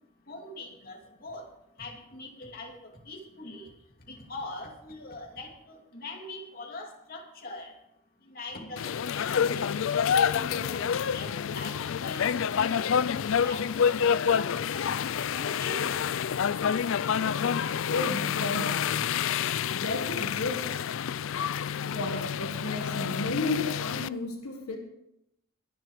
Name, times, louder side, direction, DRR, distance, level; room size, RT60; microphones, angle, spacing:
voice 1, 0.3-1.5 1.8-3.7 4.1-7.7 8.3-9.9 10.2-13.1 13.4-16.0, left 2 dB, 40° left, 0 dB, 2.7 m, -42 dB
sound 1, 8.8-24.1, left 7 dB, 60° left, 0.4 m, -28 dB
voice 2, 17.2-18.9 19.7-20.8 21.6-24.8, left 2 dB, 80° left, 3 dB, 1.7 m, -33 dB
21.5 x 7.7 x 5.0 m, 0.81 s
head